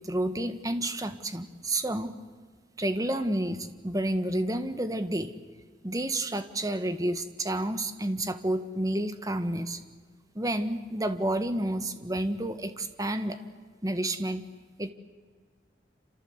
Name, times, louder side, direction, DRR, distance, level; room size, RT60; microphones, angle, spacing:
voice 1, 0.0-2.1 2.8-5.3 5.8-9.8 10.3-13.4 13.8-14.4 14.8-14.9, right 1 dB, 20° right, 9 dB, 1.4 m, -30 dB
28.0 x 27.0 x 8.0 m, 1.5 s
head